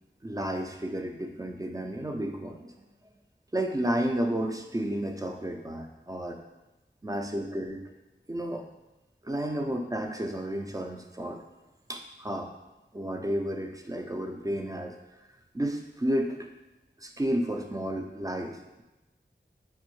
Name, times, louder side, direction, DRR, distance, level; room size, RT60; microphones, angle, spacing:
voice 1, 0.2-2.8 3.5-6.4 7.0-7.8 8.3-8.7 9.2-11.4 11.9-12.5 12.9-15.0 15.5-16.5 17.0-18.8, right 1 dB, 20° right, 3 dB, 0.4 m, -32 dB
4.4 x 2.1 x 3.0 m, 1.0 s
wide cardioid pair, 55°, 19 cm